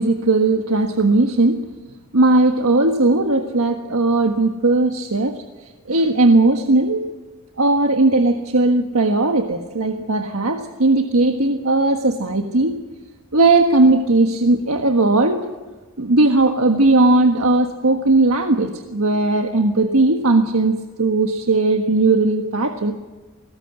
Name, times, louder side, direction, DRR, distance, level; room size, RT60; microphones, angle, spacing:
voice 1, 0.0-1.6 2.1-5.4 5.9-7.0 7.6-12.8 13.3-15.5 16.0-22.9, right 2 dB, 85° right, 5 dB, 1.5 m, -17 dB
22.5 x 19.5 x 7.9 m, 1.3 s
head